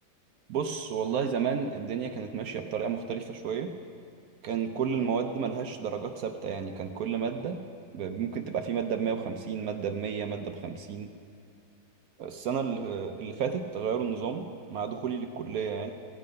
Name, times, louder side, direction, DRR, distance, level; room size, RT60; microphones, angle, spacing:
voice 1, 0.5-3.7 4.4-7.6 7.9-11.1 12.2-15.9, right 6 dB, 70° right, 6 dB, 1.0 m, -32 dB
16.5 x 8.5 x 5.2 m, 2.4 s
omnidirectional pair, 1.8 m